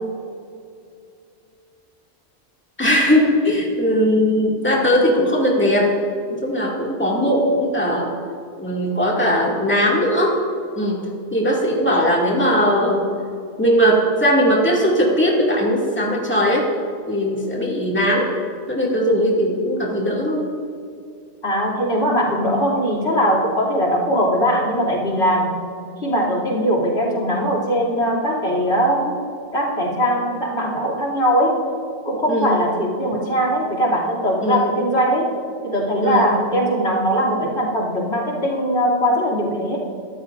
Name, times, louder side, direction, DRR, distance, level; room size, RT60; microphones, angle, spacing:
voice 1, 2.8-5.9 6.3-8.1 8.6-10.4 10.8-11.0 11.3-13.1 13.6-16.7 17.1-18.3 18.7-20.5 32.3-32.6 34.4-34.7 36.0-36.3, equal, 10° left, -4 dB, 2.4 m, -19 dB
voice 2, 21.4-25.6 26.0-29.2 29.5-31.7 32.0-35.3 35.6-39.8, equal, 70° left, -2 dB, 3.2 m, -20 dB
23.5 x 13.0 x 2.6 m, 2.4 s
omnidirectional pair, 1.2 m